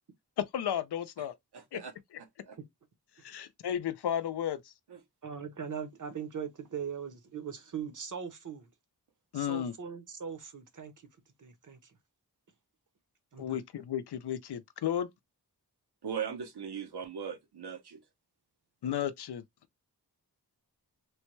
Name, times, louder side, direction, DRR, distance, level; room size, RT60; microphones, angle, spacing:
voice 1, 0.4-1.3 1.7-1.8 3.2-4.7 9.3-9.7 13.4-15.1 18.8-19.4, left 10 dB, 80° left, 0.5 m, -33 dB
voice 2, 1.5-1.9 2.5-2.6 16.0-18.0, right 7 dB, 80° right, 0.9 m, -38 dB
voice 3, 5.2-8.7 9.3-10.9 11.4-11.8 13.3-13.4, right 7 dB, 50° right, 0.8 m, -40 dB
3.3 x 2.2 x 3.0 m
wide cardioid pair, 65°, 39 cm